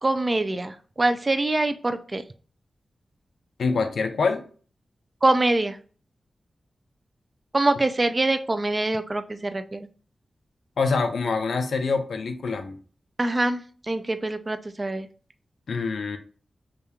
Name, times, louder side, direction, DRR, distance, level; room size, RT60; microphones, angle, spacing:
voice 1, 0.0-2.2 5.2-5.8 7.5-9.9 13.2-15.1, right 2 dB, 25° right, 0.3 m, -24 dB
voice 2, 3.6-4.5 10.8-12.8 15.7-16.2, left 4 dB, 85° left, 0.5 m, -25 dB
5.0 x 2.3 x 2.8 m
wide cardioid pair, 130°, 0 cm